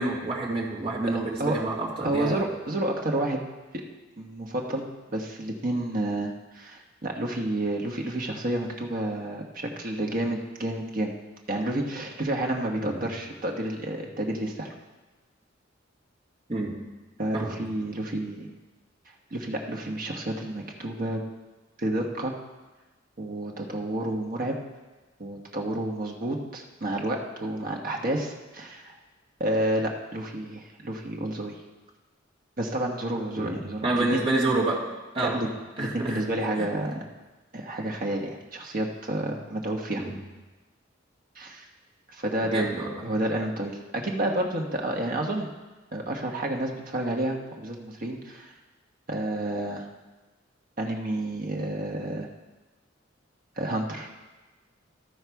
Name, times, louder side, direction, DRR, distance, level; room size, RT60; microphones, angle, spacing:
voice 1, 0.0-2.4 12.8-13.0 16.5-16.7 17.3-17.6 33.4-34.9 35.1-35.5 35.8-36.2 36.6-36.7 40.0-40.2 42.5-42.9, right 2 dB, 30° right, -6 dB, 2.0 m, -28 dB
voice 2, 2.0-3.4 4.2-11.1 11.5-14.7 17.2-18.5 19.3-21.2 21.8-22.3 23.2-24.6 25.2-28.9 29.4-31.6 32.6-34.2 35.2-35.5 35.8-37.0 37.5-40.0 41.3-41.6 42.1-42.6 43.0-45.5 45.9-48.5 49.1-49.9 50.8-52.3 53.6-54.1, right 1 dB, 50° right, 1 dB, 1.2 m, -30 dB
14.0 x 4.8 x 4.7 m, 1.2 s
head